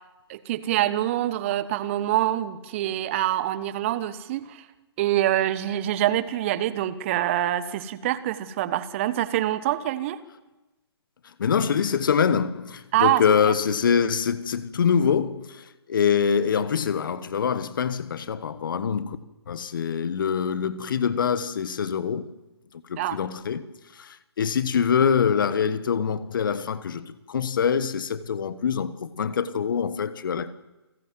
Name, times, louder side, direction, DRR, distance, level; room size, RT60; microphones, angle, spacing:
voice 1, 0.3-4.6 5.0-10.2 12.9-13.5 23.0-23.2, right 13 dB, 30° right, 1.1 m, -25 dB
voice 2, 11.4-19.2 19.5-22.2 22.9-23.6 24.0-30.5, left 7 dB, 50° left, 1.3 m, -24 dB
28.5 x 15.5 x 7.8 m
figure-of-eight pair, 135°, 14 cm